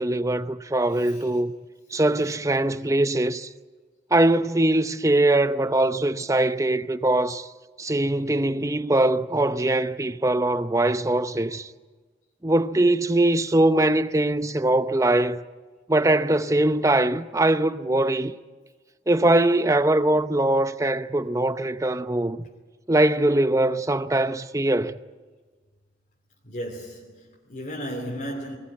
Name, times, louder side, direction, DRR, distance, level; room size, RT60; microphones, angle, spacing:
voice 1, 0.0-1.5 1.9-3.5 4.1-7.5 7.8-11.7 12.4-15.4 15.9-18.3 19.1-22.5 22.9-24.9, right 1 dB, 15° right, 0.7 m, -22 dB
voice 2, 0.9-1.4 26.4-28.6, equal, 50° left, 2.8 m, -35 dB
21.0 x 19.0 x 9.8 m
head